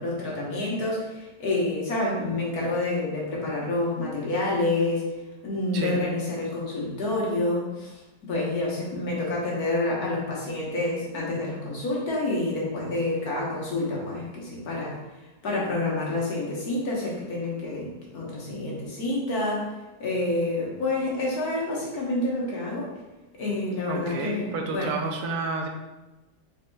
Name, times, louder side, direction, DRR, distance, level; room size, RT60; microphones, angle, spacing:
voice 1, 0.0-5.1 5.4-15.0 15.4-19.7 20.0-22.9 23.3-24.9, left 2 dB, 75° left, -4 dB, 1.7 m, -28 dB
voice 2, 23.8-25.7, right 4 dB, 80° right, 2 dB, 1.2 m, -30 dB
4.7 x 4.2 x 2.3 m, 1.1 s
omnidirectional pair, 1.6 m